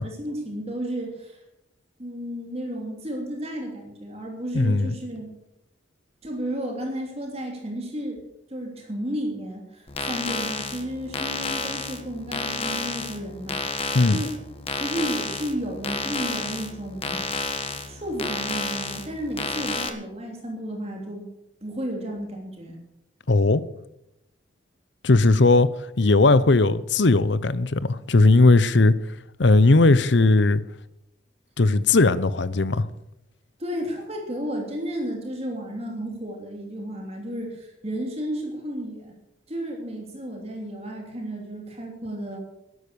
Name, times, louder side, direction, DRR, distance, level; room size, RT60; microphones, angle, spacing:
voice 1, 0.0-1.4 2.0-5.3 6.2-8.2 8.5-13.6 14.1-14.4 14.8-17.3 17.9-21.3 21.6-22.8 33.6-39.1 39.5-42.4, equal, 35° right, 3.1 m, -32 dB
voice 2, 4.5-4.9 13.9-14.2 23.3-23.6 25.0-25.7 26.0-28.9 29.4-30.6 31.6-32.9, left 3 dB, 70° left, 0.8 m, -18 dB
sound 1, 9.9-19.9, left 3 dB, 30° left, 1.5 m, -31 dB
13.0 x 11.5 x 7.0 m
head